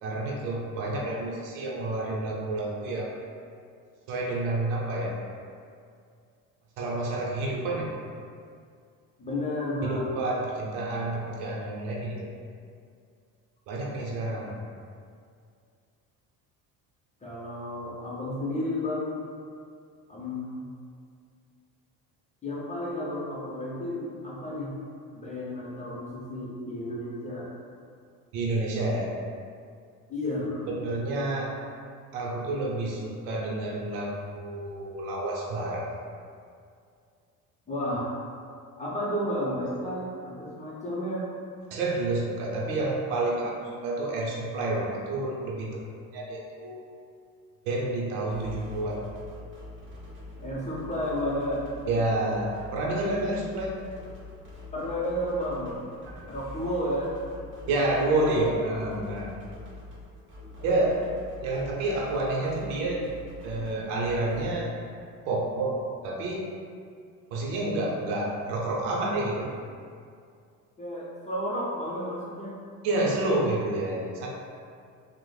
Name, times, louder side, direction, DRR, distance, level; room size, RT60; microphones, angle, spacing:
voice 1, 0.0-3.1 4.1-5.2 6.8-7.9 9.8-12.3 13.7-14.7 28.3-29.1 30.7-31.6 32.1-35.9 41.7-45.8 46.1-46.8 47.6-49.0 51.9-53.7 56.1-56.3 57.7-59.3 60.6-61.0 61.4-63.1 63.4-64.7 65.2-66.5 67.3-69.5 72.8-74.3, right 2 dB, 70° right, -2 dB, 0.7 m, -29 dB
voice 2, 9.2-10.2 17.2-19.2 20.1-20.6 22.4-24.7 25.1-27.5 30.1-30.7 37.7-38.1 38.8-41.3 50.4-51.6 54.7-55.7 56.3-57.1 70.8-72.6, left 1 dB, 15° left, -6 dB, 0.5 m, -32 dB
sound 1, 48.3-64.4, left 2 dB, 30° right, 0.6 m, -45 dB
3.0 x 2.0 x 2.2 m, 2.3 s
hypercardioid pair, 75°, 44 cm